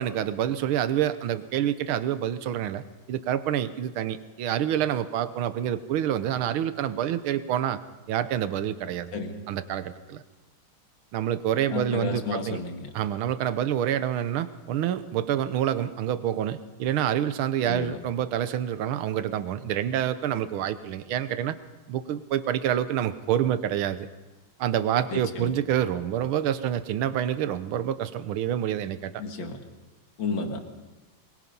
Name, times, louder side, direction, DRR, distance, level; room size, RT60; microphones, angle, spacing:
voice 1, 0.0-7.8 8.1-9.2 9.5-10.2 11.1-12.6 12.9-21.5 21.9-24.1 24.6-29.2, right 10 dB, 85° right, 13 dB, 1.7 m, -27 dB
voice 2, 9.1-9.5 11.7-12.9 17.6-18.0 25.1-25.6 29.2-29.6 30.2-30.6, left 4 dB, 65° left, 4 dB, 2.6 m, -32 dB
22.5 x 21.0 x 5.5 m, 1.2 s
omnidirectional pair, 2.2 m